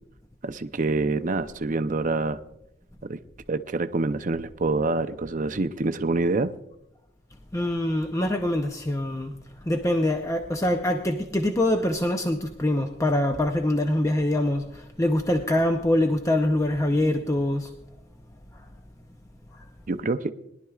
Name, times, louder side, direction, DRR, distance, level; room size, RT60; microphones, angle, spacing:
voice 1, 0.4-2.4 3.1-3.2 3.5-6.5 19.9-20.3, right 3 dB, 40° right, 10 dB, 0.6 m, -26 dB
voice 2, 7.5-9.3 9.6-17.7 18.5-18.6 19.5-19.7, left 1 dB, 15° left, 4 dB, 0.6 m, -24 dB
21.5 x 11.5 x 2.4 m, 0.82 s
head